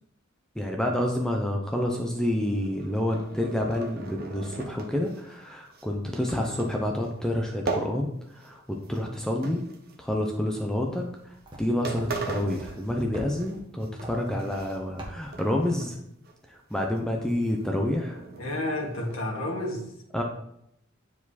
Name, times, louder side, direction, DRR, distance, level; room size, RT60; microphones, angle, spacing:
voice 1, 0.6-9.6 10.0-11.0 11.6-16.0 16.5-18.2 20.1-20.2, left 1 dB, 5° left, 1 dB, 0.7 m, -28 dB
sound 1, 2.4-8.6 8.8-10.3 11.0-11.2 11.6-11.7 11.8-13.5 13.8-15.0 15.3-15.9 16.2-16.3 16.7-19.2, right 3 dB, 50° right, 1.1 m, -39 dB
voice 2, 6.3-6.6 18.4-19.9, left 1 dB, 85° left, -1 dB, 1.9 m, -31 dB
sound 2, 10.5-15.7, equal, 25° right, 1.6 m, -46 dB
9.6 x 4.8 x 4.1 m, 0.76 s
head